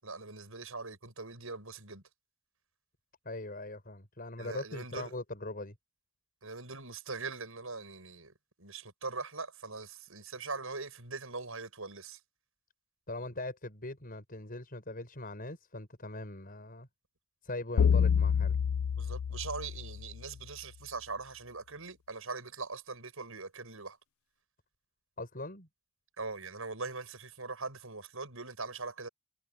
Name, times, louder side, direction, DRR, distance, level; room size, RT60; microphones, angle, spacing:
voice 1, 0.0-2.0 4.4-5.1 6.4-8.3 8.6-12.2 19.0-24.0 26.2-29.1, right 4 dB, 75° right, 7.4 m, -41 dB
voice 2, 3.2-5.7 13.1-16.9 17.4-18.6 25.2-25.7, left 2 dB, 45° left, 6.6 m, -41 dB
sound 1, 17.8-20.2, left 7 dB, 75° left, 0.4 m, -28 dB
head